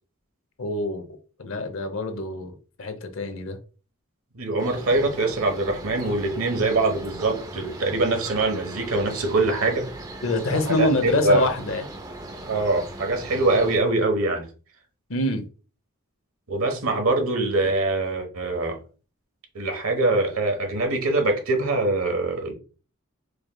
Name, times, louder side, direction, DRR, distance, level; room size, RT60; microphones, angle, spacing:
voice 1, 0.6-1.1 1.4-3.6 10.2-11.9 15.1-15.4, left 2 dB, 65° left, 0.7 m, -25 dB
voice 2, 4.3-9.8 10.5-11.5 12.4-14.5 16.5-18.8 19.5-22.5, right 2 dB, 80° right, 1.1 m, -23 dB
sound 1, 4.6-13.8, right 1 dB, 15° right, 0.5 m, -39 dB
4.8 x 3.1 x 2.2 m
head